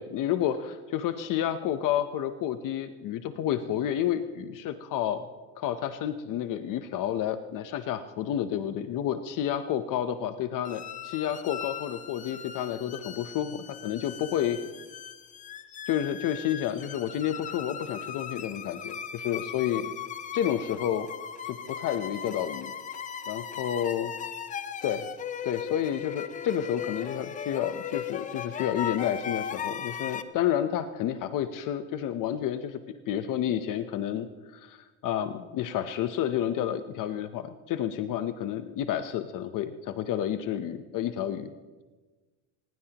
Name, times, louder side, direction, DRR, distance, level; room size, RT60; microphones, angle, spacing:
voice 1, 0.0-5.2 5.6-14.6 15.9-19.9 20.3-21.1 21.5-22.7 23.3-24.1 24.8-25.0 25.4-32.8 33.1-34.3 34.5-41.5, left 10 dB, 40° left, 10 dB, 0.8 m, -30 dB
sound 1, 10.6-30.2, left 8 dB, 20° left, 0.4 m, -38 dB
23.0 x 20.0 x 3.0 m, 1.3 s
cardioid pair, 145°, 47 cm